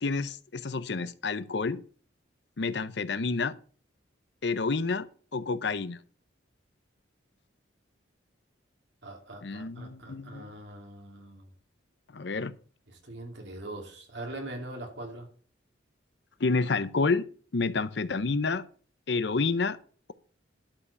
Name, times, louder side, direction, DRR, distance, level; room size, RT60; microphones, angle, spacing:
voice 1, 0.0-1.8 2.6-3.5 4.4-5.1 5.3-6.0 9.4-10.5 12.1-12.5 16.4-17.2 17.5-18.6 19.1-19.8, left 4 dB, 65° left, 0.7 m, -29 dB
voice 2, 9.0-11.5 12.9-15.3, right 1 dB, 65° right, 2.7 m, -42 dB
11.5 x 4.9 x 6.8 m
head